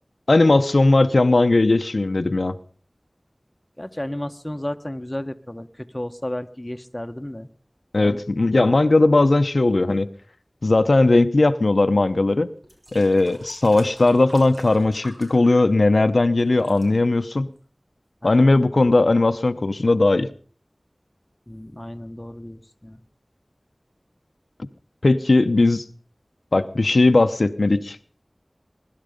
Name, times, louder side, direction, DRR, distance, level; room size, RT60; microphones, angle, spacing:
voice 1, 0.3-2.5 7.9-10.1 10.6-12.5 12.9-17.5 18.2-20.3 25.0-25.8 26.5-28.0, left 2 dB, 90° left, 10 dB, 0.8 m, -18 dB
voice 2, 3.8-7.5 8.0-8.2 18.2-18.5 21.5-23.0, left 1 dB, 20° left, 7 dB, 1.3 m, -33 dB
sound 1, 12.6-16.1 16.4-16.9 17.6-17.7, right 1 dB, 50° right, 6.6 m, -45 dB
22.0 x 12.0 x 5.2 m, 0.42 s
wide cardioid pair, 45°, 0 cm